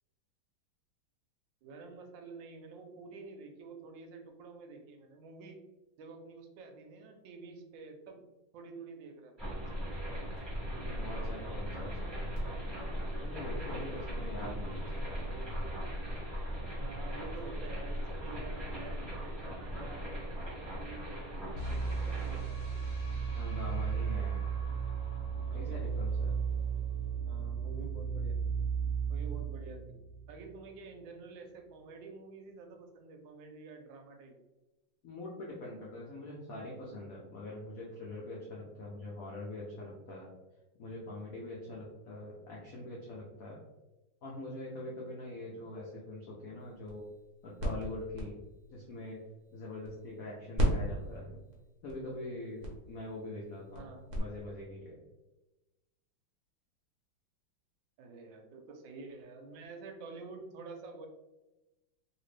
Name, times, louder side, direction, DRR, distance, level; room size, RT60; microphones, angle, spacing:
voice 1, 1.6-5.6 6.0-8.2 8.5-9.5 15.0-15.7 16.8-22.8 25.5-25.8 27.2-28.5 29.1-30.0 30.3-34.4 50.9-51.2 53.7-54.2 58.0-61.1, right 3 dB, 75° right, 4 dB, 1.2 m, -49 dB
sound 1, 9.4-26.3, equal, 15° right, 1.0 m, -39 dB
voice 2, 10.8-12.3 13.2-14.9 23.3-24.4 25.5-26.3 35.0-40.3 40.8-43.6 44.2-47.1 47.4-48.4 48.7-49.2 49.5-51.4 51.8-55.0, left 1 dB, 75° left, -4 dB, 0.7 m, -43 dB
sound 2, 21.5-30.6, right 6 dB, 45° left, 1.1 m, -34 dB
sound 3, 46.6-50.2 50.5-54.2, equal, 55° right, 0.9 m, -37 dB
3.0 x 2.9 x 3.1 m, 1.0 s
omnidirectional pair, 2.3 m